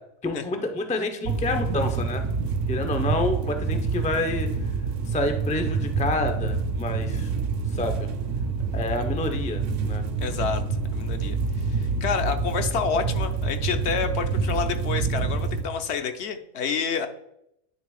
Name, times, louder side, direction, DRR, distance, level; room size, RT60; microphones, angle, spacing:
voice 1, 0.2-2.2 2.7-4.5 5.1-7.3 7.7-8.1 8.7-10.0, left 2 dB, 10° left, 6 dB, 0.3 m, -28 dB
sound 1, 1.2-15.6, right 4 dB, 85° right, 1.1 m, -27 dB
voice 2, 10.2-10.6 10.9-17.1, left 6 dB, 65° left, 7 dB, 0.9 m, -29 dB
9.8 x 3.4 x 4.7 m, 0.79 s
omnidirectional pair, 1.2 m